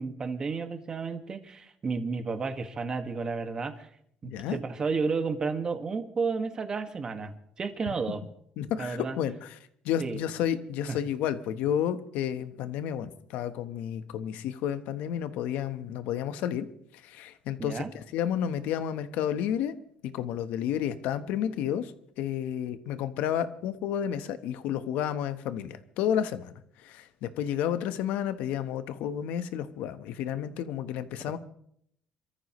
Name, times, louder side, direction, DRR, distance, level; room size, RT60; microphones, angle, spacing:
voice 1, 0.0-3.9 4.2-8.2 8.8-9.2 10.0-10.2 10.9-11.0 17.6-17.9, right 4 dB, 30° right, 7 dB, 1.8 m, -32 dB
voice 2, 4.2-4.6 8.6-9.6 9.8-16.7 17.0-19.7 20.0-21.9 22.2-26.5 26.8-31.4, left 9 dB, 85° left, 11 dB, 1.2 m, -31 dB
27.5 x 14.0 x 3.2 m, 0.68 s
cardioid pair, 125°, 3 cm